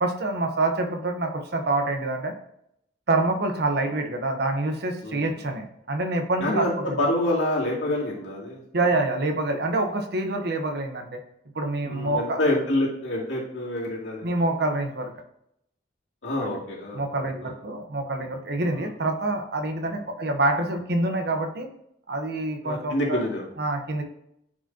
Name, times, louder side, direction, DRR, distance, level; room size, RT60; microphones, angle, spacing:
voice 1, 0.0-2.3 3.1-7.0 8.7-11.2 11.5-12.4 14.2-15.1 16.4-16.6 16.9-21.7 22.1-23.2 23.6-24.0, right 2 dB, 60° right, 5 dB, 1.0 m, -26 dB
voice 2, 6.4-8.6 11.9-14.2 16.2-17.0 18.7-18.9 19.8-19.9 22.6-23.4, left 1 dB, 80° left, -4 dB, 2.6 m, -27 dB
9.6 x 5.1 x 2.8 m, 0.74 s
head